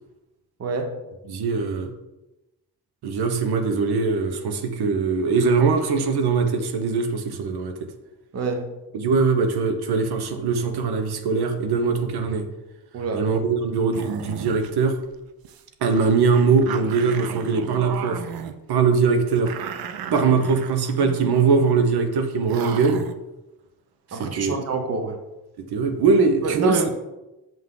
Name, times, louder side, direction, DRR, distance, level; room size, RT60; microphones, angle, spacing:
voice 1, 0.6-1.0 8.3-8.7 12.9-13.3 24.1-25.2 26.4-26.9, right 4 dB, 40° right, 4 dB, 0.8 m, -26 dB
voice 2, 1.3-1.9 3.0-7.7 8.9-12.5 13.2-15.0 15.8-18.2 18.7-19.5 20.1-23.0 24.1-24.6 25.7-26.9, right 5 dB, 85° right, 6 dB, 1.0 m, -21 dB
sound 1, 13.9-14.7 15.0-15.1 15.4-15.6 15.9-18.5 19.3-21.8 22.1-22.2 22.5-23.1, right 8 dB, 70° right, 0.6 m, -36 dB
7.3 x 5.8 x 3.8 m, 1.0 s
wide cardioid pair, 170°, 37 cm